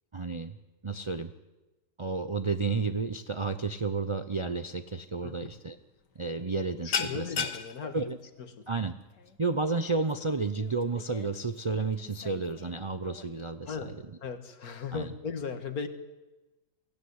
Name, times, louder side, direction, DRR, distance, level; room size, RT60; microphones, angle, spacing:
voice 1, 0.1-0.6 0.8-1.3 2.0-5.8 6.2-7.5 7.9-8.2 8.7-9.0 9.4-13.8 14.9-15.1, right 4 dB, 45° right, 9 dB, 0.3 m, -31 dB
sound 1, 5.3-5.6 5.9-6.1 6.4-13.3, left 6 dB, 80° left, 1.8 m, -38 dB
voice 2, 6.8-8.1 8.4-8.7 13.7-13.9 14.2-15.9, left 5 dB, 60° left, 8 dB, 2.0 m, -37 dB
23.0 x 16.5 x 9.7 m, 1.1 s
omnidirectional pair, 1.8 m